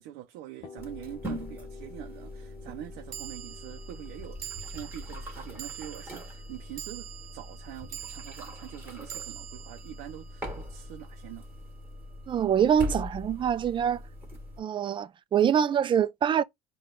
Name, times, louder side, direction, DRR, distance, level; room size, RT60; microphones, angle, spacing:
voice 1, 0.0-11.5, right 13 dB, 85° right, 0.5 m, -44 dB
sound 1, 0.6-8.3, left 6 dB, 45° left, 0.7 m, -51 dB
sound 2, 0.8-14.6, left 1 dB, 15° right, 1.6 m, -42 dB
sound 3, 1.0-1.1 3.1-11.5, right 11 dB, 60° right, 0.8 m, -45 dB
voice 2, 12.3-14.0 14.6-16.4, right 8 dB, 30° right, 0.4 m, -25 dB
4.7 x 2.3 x 3.7 m
cardioid pair, 105°, 17 cm